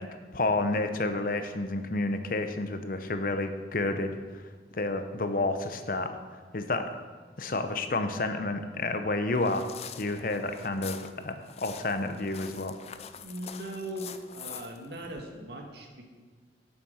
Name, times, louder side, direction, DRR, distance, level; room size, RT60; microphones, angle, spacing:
voice 1, 0.0-4.4 4.7-6.1 6.5-6.9 7.4-9.7 10.0-12.8, left 2 dB, 50° left, 8 dB, 0.8 m, -30 dB
sound 1, 9.4-15.2, left 8 dB, 35° left, 0.4 m, -45 dB
voice 2, 13.1-16.1, right 1 dB, 70° right, 2 dB, 1.6 m, -39 dB
9.3 x 7.2 x 6.3 m, 1.4 s
head